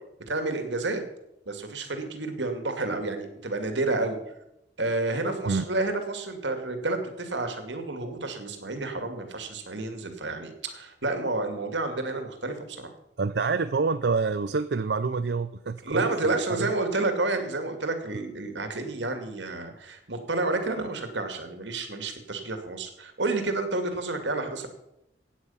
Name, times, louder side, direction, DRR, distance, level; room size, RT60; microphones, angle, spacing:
voice 1, 0.3-1.0 1.5-4.2 4.8-12.9 15.8-24.7, right 2 dB, 80° right, 7 dB, 2.3 m, -30 dB
voice 2, 13.2-16.7, right 4 dB, 65° right, 12 dB, 0.5 m, -27 dB
16.0 x 9.1 x 5.7 m, 0.86 s
head